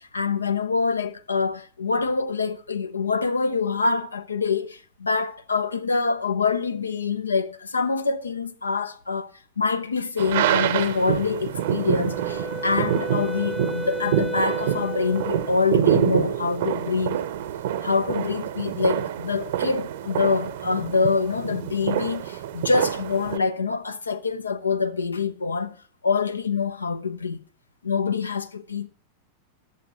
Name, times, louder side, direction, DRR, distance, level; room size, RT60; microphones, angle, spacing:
voice 1, 0.0-9.3 9.6-17.2 17.8-25.7 26.0-27.4 27.8-28.9, left 4 dB, 75° left, 0.7 m, -25 dB
sound 1, 10.2-23.4, right 11 dB, 55° right, 0.8 m, -26 dB
Wind instrument woodwind instrument, 11.6-15.7, equal, ahead, 0.4 m, -34 dB
11.0 x 7.0 x 6.2 m
figure-of-eight pair, 90°, 0 cm